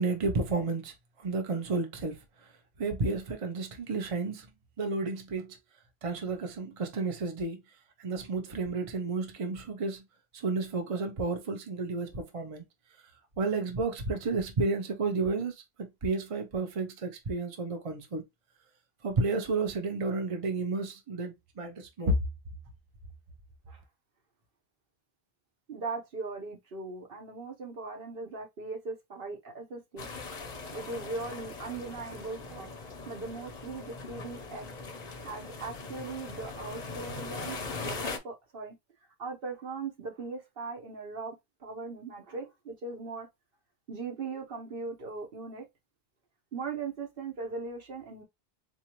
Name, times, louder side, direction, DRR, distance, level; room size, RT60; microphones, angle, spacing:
voice 1, 0.0-2.5 2.8-4.5 4.8-5.6 6.0-7.6 8.0-10.0 10.3-12.6 13.4-18.2 19.0-22.2, right 3 dB, 40° right, 0.7 m, -31 dB
voice 2, 25.7-30.1 30.7-34.7 35.2-37.6 37.8-38.8 39.2-43.3 43.9-45.7 46.5-48.2, right 4 dB, 65° right, 1.1 m, -39 dB
sound 1, 30.0-38.2, left 3 dB, 45° left, 0.7 m, -40 dB
3.8 x 2.7 x 2.9 m
omnidirectional pair, 1.0 m